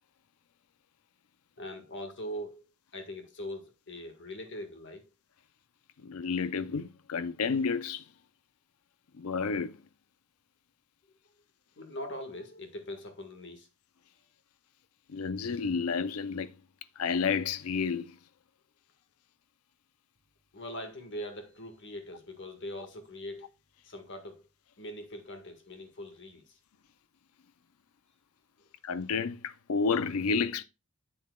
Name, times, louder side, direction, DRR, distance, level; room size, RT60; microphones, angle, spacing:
voice 1, 1.6-2.6 2.9-5.1 11.8-13.7 20.5-23.5 23.8-24.5 24.8-26.6 28.6-28.7, equal, 55° left, 1.7 m, -42 dB
voice 2, 6.0-8.0 9.2-9.7 15.1-16.5 17.0-18.2 28.8-30.6, left 5 dB, 80° left, 0.5 m, -30 dB
8.3 x 7.7 x 2.3 m
head